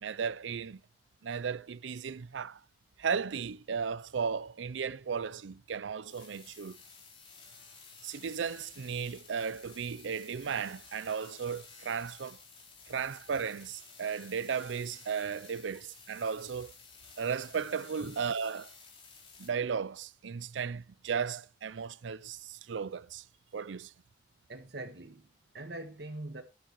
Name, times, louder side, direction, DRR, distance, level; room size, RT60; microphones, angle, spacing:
voice 1, 0.0-0.8 1.2-2.6 3.0-6.8 8.0-12.4 12.9-16.7 17.2-18.7 19.4-23.2 23.5-23.9, right 6 dB, 80° right, 0.5 m, -35 dB
sound 1, 6.1-19.5, left 5 dB, 30° left, 4.0 m, -54 dB
voice 2, 24.5-26.4, right 2 dB, 60° right, 1.5 m, -43 dB
13.0 x 10.5 x 3.1 m
head